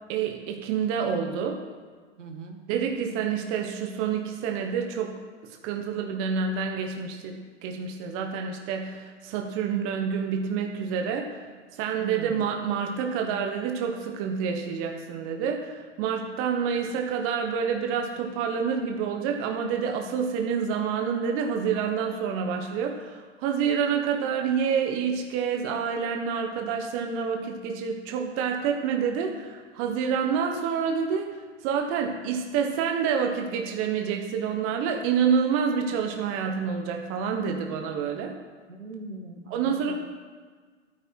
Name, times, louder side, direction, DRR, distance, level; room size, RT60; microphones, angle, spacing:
voice 1, 0.1-1.6 2.7-11.3 11.7-31.3 31.6-38.3 39.5-40.0, right 6 dB, 35° right, 3 dB, 1.5 m, -28 dB
voice 2, 2.2-2.6 12.0-12.4 38.7-40.0, right 3 dB, 80° right, 3 dB, 2.0 m, -40 dB
13.0 x 9.7 x 4.7 m, 1.5 s
figure-of-eight pair, 110°, 36 cm